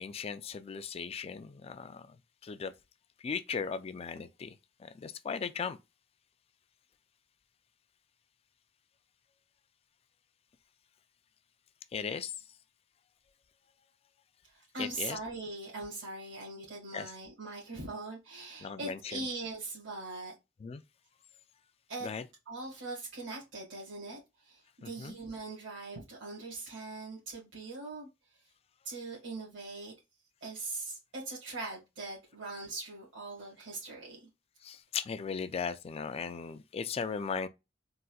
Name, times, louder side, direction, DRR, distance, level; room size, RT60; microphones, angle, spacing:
voice 1, 0.0-2.2 2.4-2.7 3.2-4.5 4.8-5.8 11.9-12.3 14.8-15.2 16.9-17.1 18.6-19.0 20.6-20.8 22.0-22.2 24.8-25.1 34.6-37.5, left 6 dB, 30° left, 0.3 m, -37 dB
voice 2, 14.4-20.3 21.9-22.1 22.4-28.4 28.8-29.9 30.4-34.3, right 2 dB, 80° right, 1.7 m, -41 dB
4.0 x 2.5 x 2.3 m
head